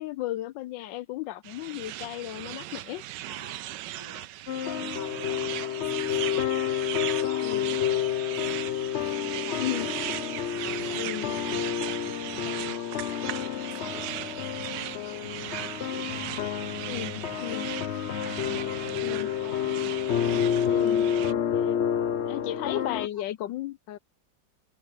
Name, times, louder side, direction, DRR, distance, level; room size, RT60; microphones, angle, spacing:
voice 1, 0.0-3.0 7.4-7.8 9.5-9.9 10.9-11.3 16.9-17.7 19.0-19.3 20.6-21.8 22.3-24.0, left 14 dB, 80° left, 1.2 m, -35 dB
sound 1, 1.4-21.3, right 15 dB, 75° right, 1.2 m, -38 dB
voice 2, 3.2-10.1 10.5-16.6 16.9-20.1 22.4-23.2, left 2 dB, 20° left, 4.3 m, -49 dB
sound 2, 4.5-23.1, left 9 dB, 55° left, 0.7 m, -29 dB
open air
omnidirectional pair, 2.0 m